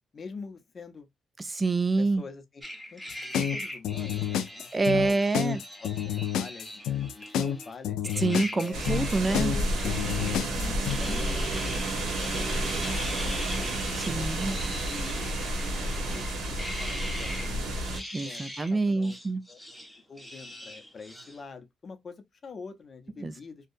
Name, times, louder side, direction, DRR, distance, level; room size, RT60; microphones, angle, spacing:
voice 1, 0.1-1.1 2.0-2.6 2.9-3.0 3.4-8.0 8.5-8.8 9.3-13.8 14.2-15.5 15.8-17.7 18.2-18.4 18.7-19.2 19.5-19.6 20.1-23.7, left 4 dB, 40° left, 0.6 m, -45 dB
voice 2, 1.4-2.2 4.7-5.6 8.2-9.5 14.0-14.5 18.1-19.4 23.2-23.3, right 3 dB, 25° right, 0.4 m, -27 dB
sound 1, 2.6-7.7 8.0-10.5 10.8-17.5 17.8-18.8 19.0-21.4, equal, ahead, 0.7 m, -41 dB
sound 2, 3.1-11.0, left 9 dB, 85° left, 0.3 m, -29 dB
sound 3, 8.7-18.0, right 1 dB, 80° right, 1.0 m, -31 dB
2.7 x 2.2 x 2.5 m
cardioid pair, 90°, 0 cm